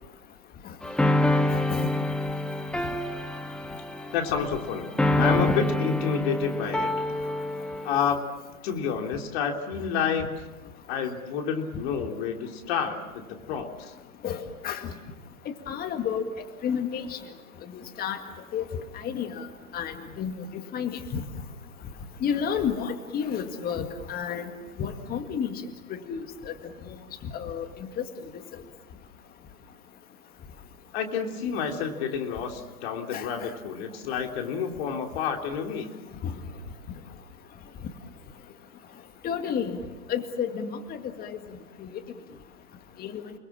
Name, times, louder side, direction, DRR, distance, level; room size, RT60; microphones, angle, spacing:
sound 1, 0.8-8.0, left 1 dB, ahead, 0.8 m, -27 dB
voice 1, 1.5-1.9 5.5-5.6 14.2-14.9 15.7-16.2 16.6-17.2 18.0-18.2 18.5-18.6 19.0-19.5 19.7-20.3 20.7-21.2 22.2-24.5 24.8-25.5 26.1-26.5 27.3-27.7 28.0-28.1 33.1-33.3 36.2-36.3 39.2-39.8 40.1-40.7 41.2-41.4 43.0-43.2, left 7 dB, 20° left, 7 dB, 2.0 m, -30 dB
voice 2, 4.1-4.9 5.2-6.9 7.8-8.2 8.6-10.4 10.9-13.7 30.9-35.9, left 7 dB, 40° left, 3 dB, 3.4 m, -29 dB
30.0 x 20.5 x 7.4 m, 1.2 s
hypercardioid pair, 120°, 45 cm